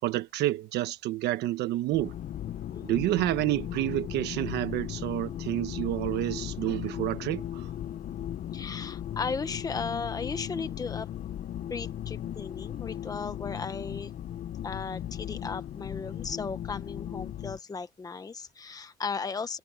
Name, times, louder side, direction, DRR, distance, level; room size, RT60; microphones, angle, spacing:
voice 1, 0.0-2.1 2.8-7.7, right 15 dB, 80° right, 1.2 m, -29 dB
sound 1, 1.9-17.6, left 11 dB, 55° left, 0.9 m, -37 dB
voice 2, 2.7-3.1 8.5-11.1 11.7-14.1 14.6-19.6, left 5 dB, 20° left, 1.1 m, -36 dB
cardioid pair, 110°, 17 cm